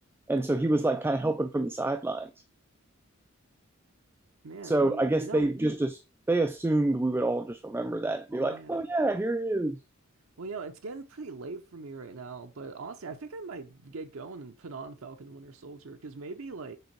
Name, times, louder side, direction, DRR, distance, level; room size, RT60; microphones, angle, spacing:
voice 1, 0.3-2.3 4.6-6.0 6.3-9.8, right 2 dB, 10° right, 0.3 m, -27 dB
voice 2, 4.4-5.6 8.4-8.8 10.4-16.8, right 4 dB, 80° right, 0.6 m, -41 dB
6.9 x 3.7 x 4.5 m
head